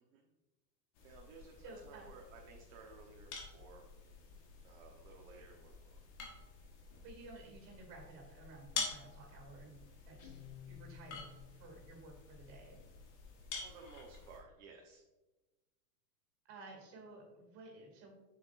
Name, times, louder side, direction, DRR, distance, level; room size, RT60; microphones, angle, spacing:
sound 1, 0.9-14.4, left 4 dB, 35° left, 1.2 m, -48 dB
voice 1, 1.0-3.9 4.6-5.9 13.6-15.0, right 4 dB, 50° right, 0 dB, 1.0 m, -56 dB
voice 2, 1.6-2.1 7.0-12.8 16.5-18.1, right 2 dB, 35° right, 1 dB, 2.2 m, -54 dB
Guitar, 10.2-11.9, left 10 dB, 55° left, 0.8 m, -54 dB
7.3 x 6.1 x 2.4 m, 1.1 s
supercardioid pair, 160°, 49 cm